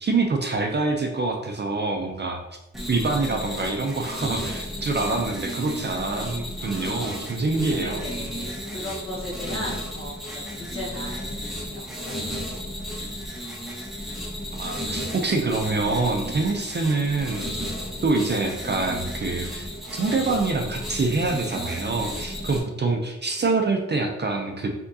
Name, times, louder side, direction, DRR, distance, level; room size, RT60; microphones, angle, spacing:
voice 1, 0.0-2.4 2.9-8.0 14.5-17.4 18.0-24.7, right 3 dB, 35° right, 3 dB, 0.5 m, -25 dB
sound 1, 2.7-22.6, equal, ahead, 0.9 m, -33 dB
voice 2, 7.4-12.4, equal, 45° left, -4 dB, 1.3 m, -37 dB
4.5 x 3.6 x 2.7 m, 0.93 s
wide cardioid pair, 165°, 29 cm